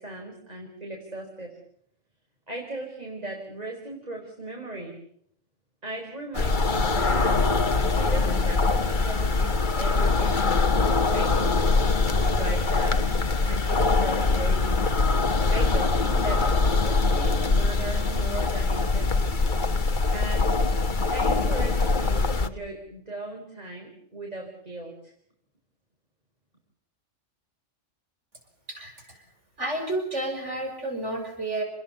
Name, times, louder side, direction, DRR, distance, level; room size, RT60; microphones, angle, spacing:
voice 1, 0.0-1.5 2.5-5.0 5.8-7.6 7.9-10.5 11.1-13.1 13.4-14.7 15.5-19.4 20.1-20.8 21.1-25.1, right 2 dB, 30° right, 1 dB, 5.1 m, -37 dB
sound 1, 6.3-22.5, left 3 dB, 40° left, 1.6 m, -23 dB
voice 2, 28.7-29.2 29.6-31.6, right 2 dB, 70° right, 4 dB, 6.3 m, -31 dB
28.5 x 21.0 x 7.0 m, 0.68 s
omnidirectional pair, 1.3 m